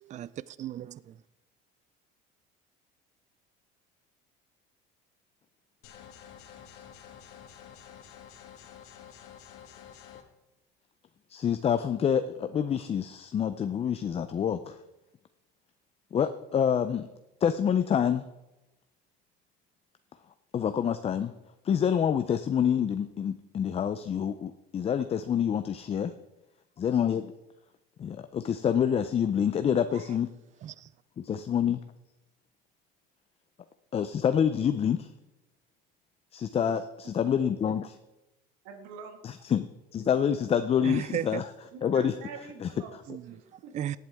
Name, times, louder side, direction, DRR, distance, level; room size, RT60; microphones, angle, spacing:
voice 1, 0.0-1.2 30.6-30.9 40.8-41.4 43.1-44.0, right 11 dB, 35° right, 0.4 m, -36 dB
sound 1, 5.8-10.2, left 9 dB, 75° left, 1.7 m, -49 dB
voice 2, 11.3-14.8 16.1-17.1 17.4-18.2 20.5-21.3 21.6-26.1 26.8-27.3 28.0-30.3 31.2-31.8 33.9-35.1 36.3-38.0 39.2-41.5 41.8-42.1 42.6-42.7, left 8 dB, 30° left, 0.5 m, -27 dB
voice 3, 36.7-37.3 38.6-39.2 41.7-43.0 43.2-43.7, right 5 dB, 80° right, 1.9 m, -46 dB
18.0 x 8.3 x 3.6 m
supercardioid pair, 110°, 20 cm